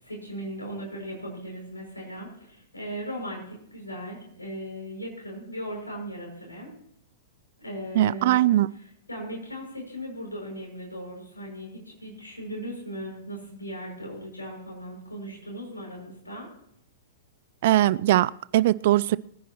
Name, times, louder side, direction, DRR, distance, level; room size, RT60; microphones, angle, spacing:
voice 1, 0.0-6.7 7.6-8.4 9.1-16.5, equal, 90° left, 6.4 m, -38 dB
voice 2, 7.9-8.7 17.6-19.2, right 14 dB, 55° right, 0.4 m, -21 dB
23.5 x 10.0 x 3.0 m
figure-of-eight pair, 105°, 0 cm